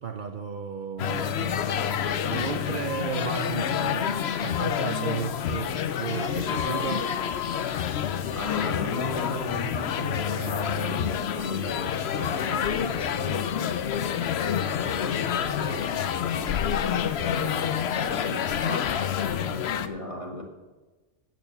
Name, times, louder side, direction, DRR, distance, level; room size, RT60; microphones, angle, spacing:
voice 1, 0.0-7.1, right 7 dB, 50° right, 6 dB, 0.7 m, -34 dB
sound 1, 1.0-19.9, left 8 dB, 65° left, 0.8 m, -28 dB
sound 2, 5.9-8.7, right 9 dB, 75° right, 0.9 m, -43 dB
voice 2, 8.3-13.6 13.8-19.0 19.2-20.4, left 2 dB, 25° left, 2 dB, 1.6 m, -36 dB
11.0 x 8.3 x 6.9 m, 1.2 s
omnidirectional pair, 1.2 m